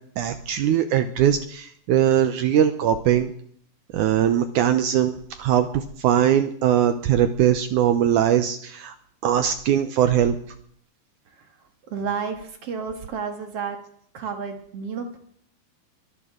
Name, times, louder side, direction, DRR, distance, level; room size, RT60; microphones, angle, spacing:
voice 1, 0.2-3.3 3.9-9.0 9.2-10.4, right 10 dB, 80° right, 9 dB, 1.8 m, -21 dB
voice 2, 11.9-13.8 14.1-15.2, right 6 dB, 50° right, 6 dB, 2.1 m, -31 dB
23.0 x 13.0 x 3.7 m, 0.63 s
omnidirectional pair, 4.4 m